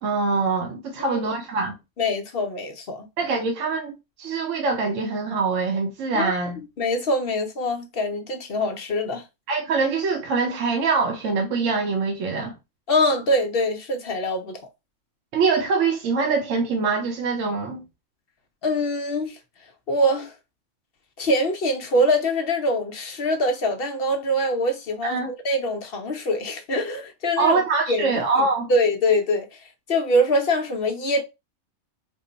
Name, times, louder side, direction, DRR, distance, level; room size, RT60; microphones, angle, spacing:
voice 1, 0.0-1.8 3.2-6.6 9.5-12.5 15.3-17.8 25.0-25.3 27.4-28.7, right 4 dB, 75° right, 1.1 m, -24 dB
voice 2, 2.0-3.1 6.1-6.3 6.8-9.2 12.9-14.6 18.6-19.4 19.9-20.3 21.2-27.6 27.9-28.2 28.7-29.6 29.9-31.2, left 1 dB, 55° left, 0.7 m, -23 dB
3.6 x 2.1 x 3.8 m
omnidirectional pair, 1.3 m